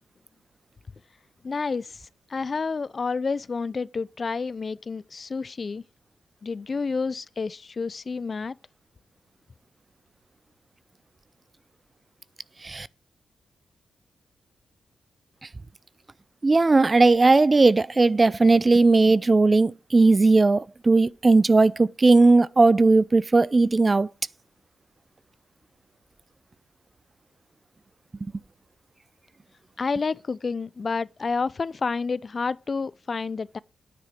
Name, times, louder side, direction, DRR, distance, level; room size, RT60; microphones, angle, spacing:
voice 1, 1.4-2.0 2.3-5.8 6.4-8.5 29.8-33.6, left 4 dB, 45° left, 0.5 m, -29 dB
voice 2, 16.4-24.1 28.2-28.3, right 3 dB, 30° right, 0.5 m, -18 dB
9.7 x 9.4 x 5.0 m
cardioid pair, 65°, 0 cm